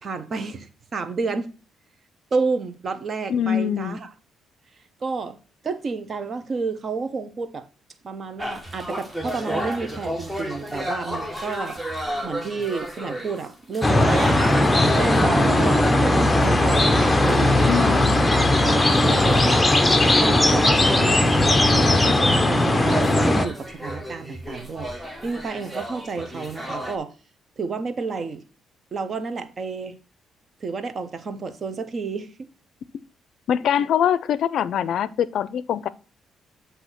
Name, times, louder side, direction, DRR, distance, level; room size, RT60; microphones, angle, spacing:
voice 1, 0.0-1.5 2.3-4.1 5.0-5.4 5.6-7.7 8.0-11.8 12.2-14.4 15.0-17.7 18.6-19.7 20.2-27.1 27.6-28.5 28.9-30.0 30.6-32.3 33.8-33.9, right 4 dB, 45° right, 0.8 m, -30 dB
voice 2, 3.3-4.0 17.6-18.2 33.5-35.9, left 9 dB, 70° left, 0.4 m, -23 dB
sound 1, 8.4-13.5 13.7-27.0, equal, 10° right, 1.2 m, -33 dB
sound 2, 13.8-23.5, left 1 dB, 15° left, 0.6 m, -18 dB
7.9 x 2.8 x 5.7 m
cardioid pair, 90°, 0 cm